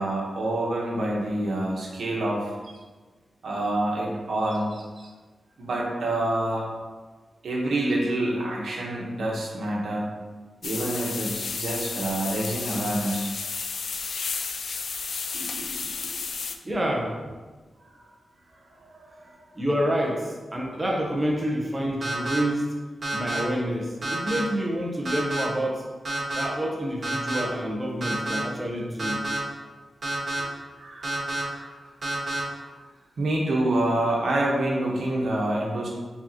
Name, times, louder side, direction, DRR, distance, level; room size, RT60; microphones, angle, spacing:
voice 1, 0.0-2.5 3.4-5.1 5.6-6.7 7.4-10.1 10.6-13.3 15.3-15.7 18.8-19.4 30.3-31.8 32.5-32.6 33.2-35.9, right 1 dB, 75° right, -3 dB, 1.0 m, -27 dB
sound 1, 10.6-16.6, left 5 dB, 70° left, 0.3 m, -32 dB
voice 2, 16.6-17.1 19.6-22.8 23.1-25.8 26.3-29.2, equal, 20° right, -2 dB, 0.7 m, -28 dB
sound 2, 22.0-22.4 23.0-23.4 24.0-24.4 25.0-25.4 26.0-26.4 27.0-27.4 28.0-28.4 29.0-29.4 30.0-30.4 31.0-31.4 32.0-32.4, right 2 dB, 45° right, 1.4 m, -29 dB
4.9 x 3.6 x 2.8 m, 1.3 s
wide cardioid pair, 100°, 0 cm